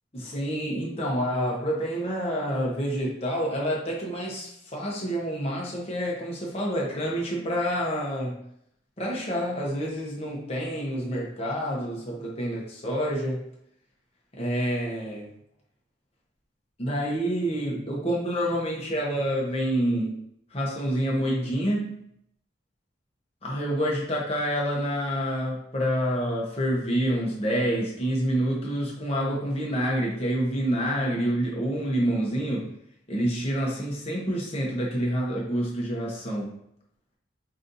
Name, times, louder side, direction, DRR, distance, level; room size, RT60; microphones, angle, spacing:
voice 1, 0.1-8.4 9.0-13.4 14.3-15.3 16.8-20.2 20.5-22.0 23.4-32.8 33.1-36.5, equal, 30° left, -3 dB, 1.0 m, -28 dB
5.2 x 2.7 x 2.7 m, 0.71 s
head